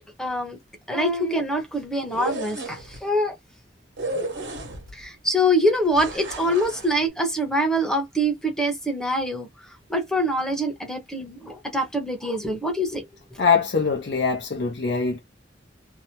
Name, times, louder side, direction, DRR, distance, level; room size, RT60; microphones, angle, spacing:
voice 1, 0.2-0.6 0.9-3.3 4.9-9.5 9.9-13.1, equal, 5° left, 0.8 m, -24 dB
sound 1, 2.0-3.0 4.0-5.0 5.9-6.9, right 2 dB, 75° right, 1.2 m, -33 dB
voice 2, 13.4-15.2, left 5 dB, 60° left, 0.5 m, -22 dB
2.8 x 2.0 x 2.9 m
head